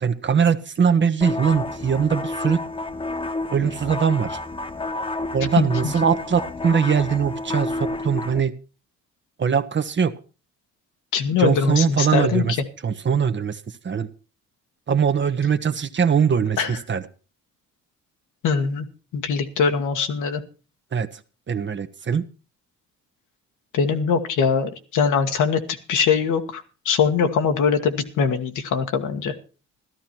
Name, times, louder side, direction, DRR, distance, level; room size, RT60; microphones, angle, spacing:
voice 1, 0.0-2.6 3.5-4.4 5.3-8.5 9.4-10.1 11.4-12.5 12.8-14.1 14.9-17.0 20.9-21.2 21.5-22.2, right 7 dB, 40° right, 10 dB, 1.1 m, -21 dB
sound 1, 1.2-8.4, left 2 dB, 15° left, 0.9 m, -30 dB
voice 2, 5.6-5.9 11.1-12.4 16.6-16.7 18.4-18.9 19.1-20.4 23.7-25.6 25.9-29.3, left 6 dB, 80° left, 6 dB, 1.8 m, -22 dB
14.0 x 12.5 x 4.5 m, 0.35 s
cardioid pair, 90°, 30 cm